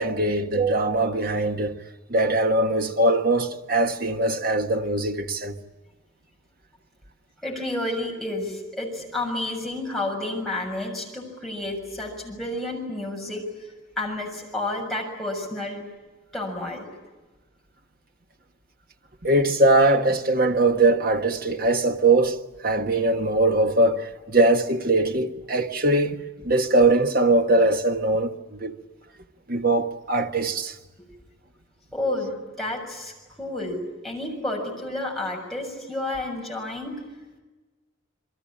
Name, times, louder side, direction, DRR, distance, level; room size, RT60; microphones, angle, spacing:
voice 1, 0.0-1.8 2.1-5.5 19.2-28.7 29.5-30.7, right 2 dB, 45° right, 1.5 m, -21 dB
voice 2, 7.4-13.4 14.0-15.8 16.3-16.9 31.9-37.0, left 2 dB, ahead, 6.7 m, -30 dB
28.5 x 22.5 x 8.8 m
head